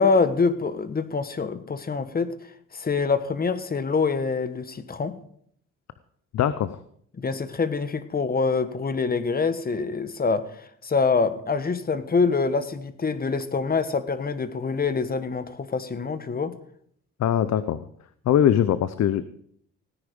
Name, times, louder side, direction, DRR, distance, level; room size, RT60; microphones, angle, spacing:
voice 1, 0.0-2.3 2.7-5.2 7.2-16.6, left 4 dB, 30° left, 12 dB, 1.4 m, -25 dB
voice 2, 6.3-6.8 17.2-17.8 18.3-19.2, left 10 dB, 60° left, 14 dB, 0.7 m, -21 dB
17.5 x 9.9 x 5.2 m, 0.66 s
cardioid pair, 90°, 30 cm